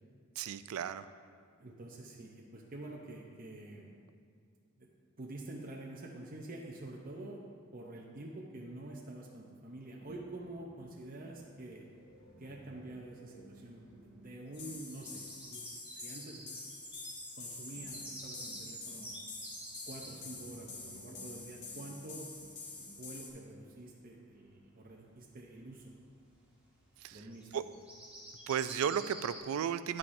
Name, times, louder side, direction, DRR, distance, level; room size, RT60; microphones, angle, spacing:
voice 1, 0.4-1.1 27.0-27.2 27.5-27.6 28.5-30.0, right 8 dB, 80° right, 13 dB, 0.3 m, -34 dB
voice 2, 1.6-3.9 4.8-4.9 5.2-11.9 12.4-16.5 17.4-19.2 19.9-22.3 23.0-25.9 27.1-27.6, right 2 dB, 40° right, -1 dB, 0.6 m, -47 dB
sound 1, 10.0-11.4 12.2-15.4 17.8-19.2 19.9-23.1, right 1 dB, 30° left, 1.7 m, -58 dB
sound 2, 10.9-11.0 11.3-21.6 22.2-22.3 22.6-22.7 23.0-23.1 25.0-25.1 25.4-25.6 26.2-29.4, right 1 dB, 5° right, 1.7 m, -49 dB
sound 3, 14.5-23.3, left 4 dB, 90° left, 1.4 m, -47 dB
9.6 x 8.8 x 2.6 m, 2.1 s
head